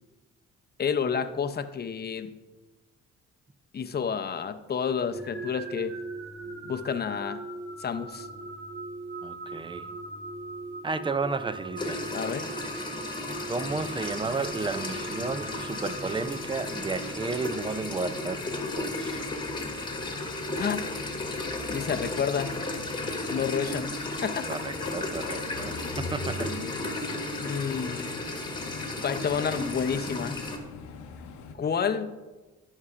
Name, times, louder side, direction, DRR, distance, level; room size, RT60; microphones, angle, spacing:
voice 1, 0.8-2.3 3.7-5.9 6.6-7.4 7.8-8.3 12.1-12.5 20.5-20.8 21.7-22.5 23.3-24.5 27.4-28.0 29.0-30.4 31.5-32.1, left 7 dB, 35° left, 0.6 m, -30 dB
sound 1, 5.1-17.1, right 2 dB, 50° right, 1.4 m, -40 dB
voice 2, 9.2-9.9 10.8-12.0 13.4-18.5 18.8-19.2 24.5-26.5, right 4 dB, 15° right, 0.4 m, -32 dB
sound 2, 11.8-30.6, left 2 dB, 15° left, 1.3 m, -34 dB
sound 3, 13.6-31.5, left 4 dB, 80° left, 0.8 m, -43 dB
14.5 x 5.5 x 2.5 m
cardioid pair, 90°, 30 cm